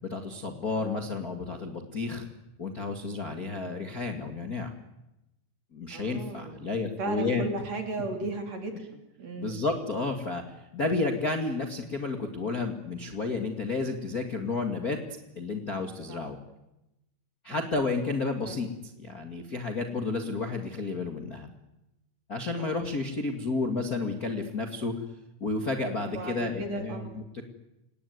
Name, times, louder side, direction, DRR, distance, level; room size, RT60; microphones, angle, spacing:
voice 1, 0.0-2.3 2.6-4.7 5.7-7.4 9.4-15.0 15.3-16.4 17.4-18.7 19.0-21.5 22.3-24.9 25.4-27.2, left 3 dB, 60° left, 4 dB, 0.9 m, -31 dB
voice 2, 5.9-6.6 7.0-8.8 9.2-9.6 16.1-16.2 17.5-17.6 18.4-18.5 22.6-22.8 26.0-27.1, right 3 dB, 40° right, 4 dB, 4.1 m, -35 dB
29.0 x 19.0 x 9.5 m, 0.93 s
omnidirectional pair, 5.4 m